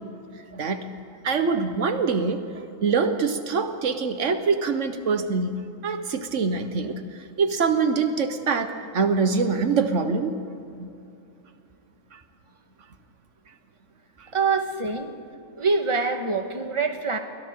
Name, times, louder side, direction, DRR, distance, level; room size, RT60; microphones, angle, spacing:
voice 1, 0.5-0.9 1.2-2.4 2.8-5.6 5.8-7.0 7.4-10.4 10.7-10.9 12.1-12.2, right 5 dB, 85° right, 8 dB, 1.5 m, -24 dB
voice 2, 14.3-15.1 15.5-17.2, right 4 dB, 25° right, 5 dB, 1.5 m, -25 dB
29.5 x 23.5 x 3.8 m, 2.6 s
omnidirectional pair, 1.2 m